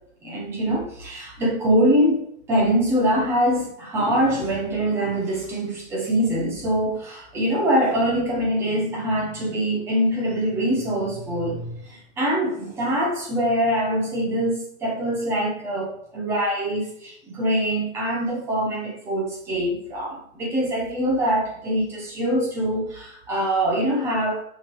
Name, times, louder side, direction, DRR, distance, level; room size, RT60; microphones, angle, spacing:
voice 1, 0.2-2.2 2.5-24.4, equal, 5° right, -2 dB, 0.7 m, -24 dB
6.1 x 5.9 x 4.5 m, 0.69 s
hypercardioid pair, 170°, 42 cm